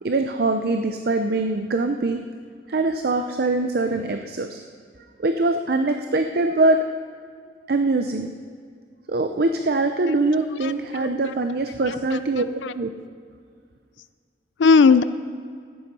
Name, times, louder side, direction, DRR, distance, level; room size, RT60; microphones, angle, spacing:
voice 1, 0.0-2.2 2.7-4.6 5.2-6.8 7.7-8.3 9.1-12.4 12.7-12.9, right 2 dB, 55° right, 6 dB, 0.6 m, -23 dB
voice 2, 10.6-11.3 11.8-12.2 12.6-12.7 14.6-15.0, left 5 dB, 90° left, 14 dB, 0.4 m, -18 dB
15.0 x 10.5 x 5.4 m, 2.1 s
head